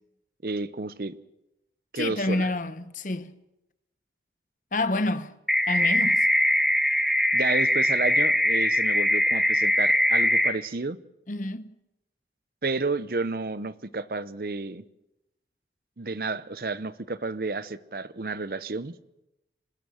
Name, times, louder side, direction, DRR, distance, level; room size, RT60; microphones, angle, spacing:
voice 1, 0.4-1.2 1.9-2.5 7.3-11.0 12.6-14.8 16.0-18.9, right 3 dB, 55° right, 0.8 m, -31 dB
voice 2, 1.9-3.4 4.7-5.4 5.7-6.3 11.3-11.7, left 2 dB, 45° left, 0.9 m, -28 dB
sound 1, 5.5-10.5, left 1 dB, ahead, 0.8 m, -22 dB
26.0 x 16.0 x 6.3 m
head